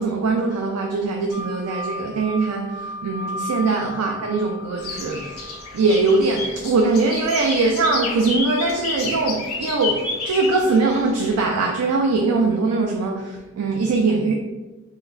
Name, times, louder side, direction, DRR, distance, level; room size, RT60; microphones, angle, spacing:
voice 1, 0.0-5.3 5.7-14.3, right 3 dB, 85° right, 1 dB, 0.4 m, -21 dB
sound 1, 1.3-6.1, left 1 dB, 50° left, 1.0 m, -35 dB
sound 2, 4.8-11.5, left 4 dB, 80° left, 0.6 m, -31 dB
4.1 x 2.1 x 2.5 m, 1.1 s
head